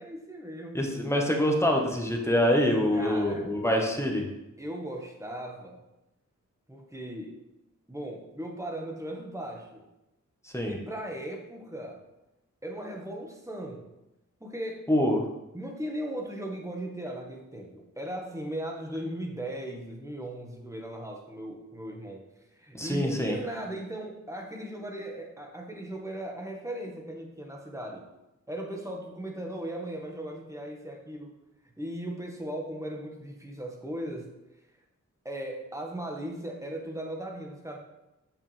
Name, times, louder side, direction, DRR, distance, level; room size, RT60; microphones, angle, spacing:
voice 1, 0.0-1.1 2.9-4.0 4.6-5.8 6.7-7.4 7.9-9.8 10.7-12.0 12.6-13.9 14.4-14.9 15.5-22.3 22.5-28.0 28.5-31.3 31.8-34.3 35.3-37.8, right 1 dB, 10° right, 0 dB, 1.8 m, -37 dB
voice 2, 0.7-4.2 10.5-10.8 14.9-15.2 22.8-23.4, left 1 dB, 10° left, 0 dB, 1.6 m, -25 dB
8.1 x 6.6 x 3.6 m, 0.92 s
cardioid pair, 55°, 31 cm